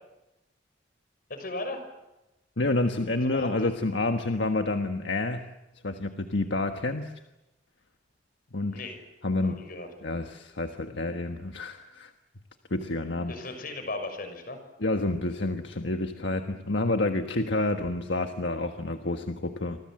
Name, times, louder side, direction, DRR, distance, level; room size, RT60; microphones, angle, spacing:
voice 1, 1.3-1.8 3.2-3.7 8.7-9.0 9.4-9.9 13.3-14.6, left 2 dB, 55° left, 7 dB, 6.1 m, -36 dB
voice 2, 2.6-5.4 5.8-7.1 8.5-8.8 9.2-9.6 10.0-12.1 12.7-13.3 14.8-19.8, left 2 dB, 75° left, 5 dB, 1.4 m, -29 dB
29.0 x 25.0 x 7.7 m, 0.98 s
head